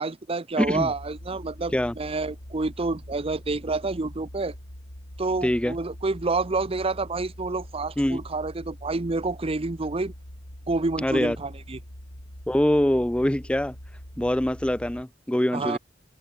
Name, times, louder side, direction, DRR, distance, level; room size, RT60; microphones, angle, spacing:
voice 1, 0.0-4.5 5.2-10.1 10.7-11.8 15.5-15.8, right 3 dB, 30° right, 0.7 m, -28 dB
sound 1, 0.6-15.0, equal, 90° left, 5.4 m, -43 dB
voice 2, 0.6-0.9 1.7-1.9 5.4-5.7 8.0-8.2 11.0-11.4 12.5-13.7 14.2-15.8, left 1 dB, 5° left, 0.5 m, -24 dB
open air
head